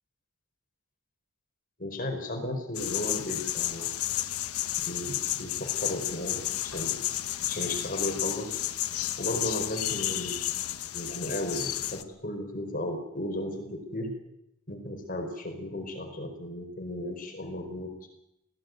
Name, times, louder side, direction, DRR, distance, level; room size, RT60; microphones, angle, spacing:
voice 1, 1.8-3.9 4.9-7.0 7.5-8.7 9.2-10.4 10.9-14.1 14.7-17.9, left 1 dB, 40° left, 4 dB, 4.7 m, -35 dB
sound 1, 2.7-12.0, left 13 dB, 85° left, 1.1 m, -32 dB
19.5 x 16.0 x 9.4 m, 0.83 s
head